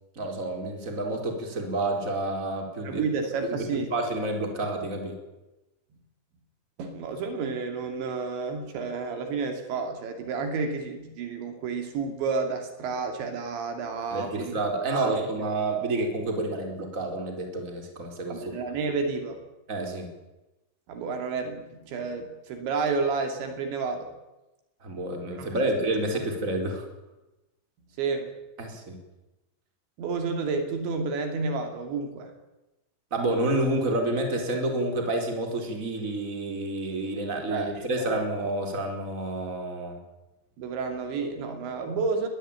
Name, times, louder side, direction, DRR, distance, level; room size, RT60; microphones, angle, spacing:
voice 1, 0.2-3.0 3.4-5.1 14.1-18.4 19.7-20.1 24.8-26.9 28.6-29.0 33.1-40.0, right 2 dB, 15° right, 3 dB, 4.3 m, -29 dB
voice 2, 2.8-3.9 6.8-14.6 14.9-15.2 18.3-19.4 20.9-24.1 25.4-25.5 28.0-28.3 30.0-32.3 37.5-38.1 40.6-42.3, right 4 dB, 75° right, 5 dB, 4.8 m, -30 dB
22.0 x 20.5 x 9.0 m, 1.0 s
omnidirectional pair, 5.4 m